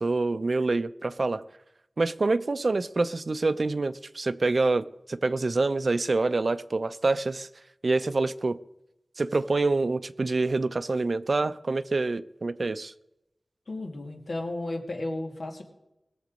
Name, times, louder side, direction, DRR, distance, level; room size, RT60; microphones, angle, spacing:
voice 1, 0.0-1.4 2.0-7.5 7.8-8.6 9.2-12.9, right 3 dB, 60° right, 13 dB, 0.6 m, -26 dB
voice 2, 13.7-15.6, left 2 dB, 80° left, 0 dB, 2.5 m, -33 dB
20.5 x 7.2 x 5.2 m, 0.89 s
wide cardioid pair, 85°, 0 cm